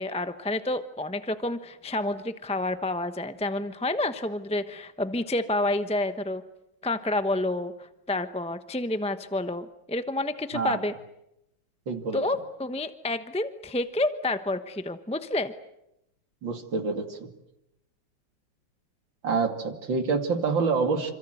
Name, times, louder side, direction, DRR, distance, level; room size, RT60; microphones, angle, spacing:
voice 1, 0.0-6.4 6.8-10.9 12.1-15.5, left 2 dB, 5° left, 10 dB, 0.5 m, -29 dB
voice 2, 11.9-12.2 16.4-17.3 19.2-21.1, right 4 dB, 80° right, 6 dB, 3.2 m, -27 dB
27.5 x 26.0 x 8.0 m, 0.85 s
omnidirectional pair, 2.0 m